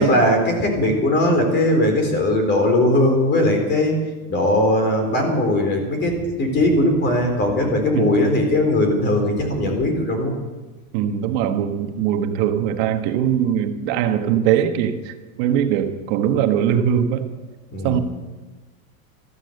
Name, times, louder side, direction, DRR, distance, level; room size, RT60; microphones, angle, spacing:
voice 1, 0.0-4.0 4.3-10.4 17.7-18.0, left 1 dB, 25° left, 4 dB, 3.9 m, -19 dB
voice 2, 10.9-17.2 17.8-18.0, right 9 dB, 50° right, 7 dB, 1.4 m, -21 dB
14.5 x 14.0 x 6.6 m, 1.2 s
supercardioid pair, 160°, 42 cm